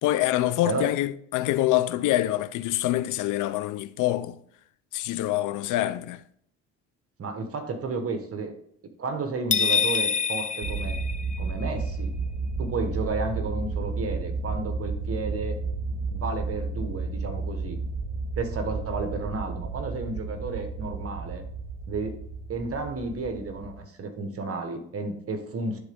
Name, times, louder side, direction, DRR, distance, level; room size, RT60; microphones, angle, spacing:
voice 1, 0.0-4.4 4.9-6.2, left 14 dB, 85° left, 0.5 m, -25 dB
voice 2, 7.2-8.5 9.0-11.0 11.4-12.1 12.6-15.6 16.1-17.8 18.4-21.4 21.9-22.2 22.5-25.8, right 3 dB, 50° right, 1.3 m, -32 dB
sound 1, 9.5-11.7, left 6 dB, 25° left, 0.4 m, -26 dB
sound 2, 10.6-23.8, right 4 dB, 75° right, 1.0 m, -32 dB
11.0 x 3.9 x 3.6 m
cardioid pair, 90°, 30 cm